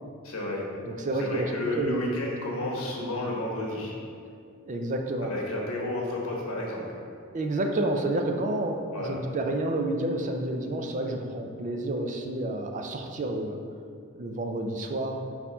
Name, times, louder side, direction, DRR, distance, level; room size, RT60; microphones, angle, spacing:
voice 1, 0.2-0.6 1.2-3.9 5.2-6.8 8.9-9.2, left 1 dB, 75° left, -2 dB, 1.2 m, -31 dB
voice 2, 0.8-2.4 4.7-5.3 7.3-13.6 14.2-15.2, right 1 dB, 35° right, 3 dB, 0.4 m, -30 dB
4.3 x 4.2 x 5.5 m, 2.4 s
head